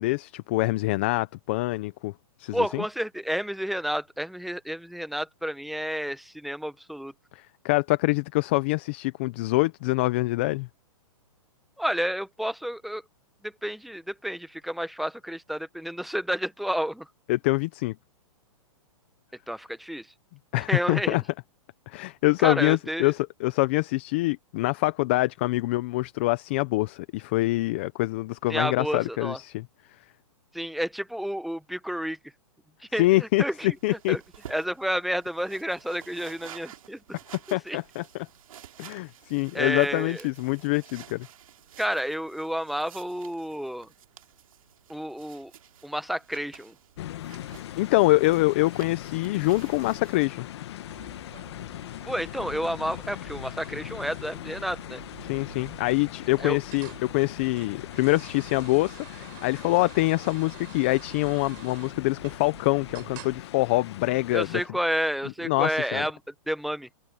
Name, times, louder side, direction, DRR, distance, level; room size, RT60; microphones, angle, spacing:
voice 1, 0.0-2.1 2.4-2.8 7.3-10.7 17.3-17.9 20.5-21.2 21.9-29.6 33.0-33.4 33.8-34.2 37.5-38.0 38.8-41.3 47.8-50.5 55.2-64.6 65.4-66.0, left 21 dB, 20° left, 0.3 m, -25 dB
voice 2, 2.5-7.1 11.8-13.0 13.4-17.1 19.5-20.1 20.6-21.2 22.4-23.1 28.5-29.4 30.5-32.2 32.9-34.2 34.5-37.0 37.7-37.8 39.5-40.3 41.8-43.9 44.9-45.5 45.8-46.7 52.0-55.0 56.4-56.6 64.3-66.2 66.5-66.9, equal, ahead, 0.8 m, -30 dB
sound 1, 33.7-50.3, right 10 dB, 65° right, 2.3 m, -51 dB
sound 2, 47.0-64.7, left 13 dB, 45° left, 1.0 m, -40 dB
sound 3, 50.9-63.4, right 25 dB, 35° right, 8.0 m, -49 dB
hypercardioid pair, 165°, 19 cm